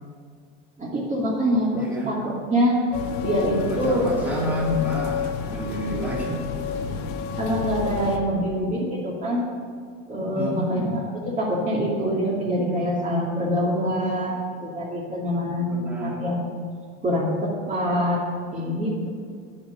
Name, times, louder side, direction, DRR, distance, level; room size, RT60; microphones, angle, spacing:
voice 1, 0.8-2.8 3.2-4.3 5.9-6.0 7.4-9.4 10.1-16.4 17.0-18.2 18.5-19.1, equal, 20° right, -4 dB, 2.4 m, -25 dB
voice 2, 1.8-2.1 3.5-6.4 10.3-10.9 15.4-16.2, left 1 dB, 5° right, -4 dB, 2.6 m, -30 dB
sound 1, 2.9-8.2, left 6 dB, 70° left, 1.5 m, -30 dB
10.5 x 9.0 x 7.0 m, 2.1 s
supercardioid pair, 125°, 33 cm